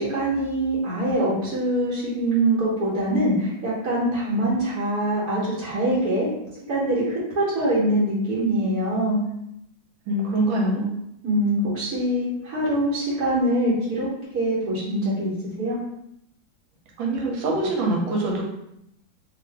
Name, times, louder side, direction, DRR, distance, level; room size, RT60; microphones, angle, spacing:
voice 1, 0.0-6.3 6.7-9.2 10.5-10.9 11.2-14.1 14.3-15.3 15.6-15.8, right 1 dB, 55° right, -9 dB, 1.3 m, -24 dB
voice 2, 10.1-10.8 17.0-18.4, right 2 dB, 80° right, -2 dB, 1.4 m, -24 dB
3.1 x 2.5 x 3.3 m, 0.79 s
omnidirectional pair, 2.2 m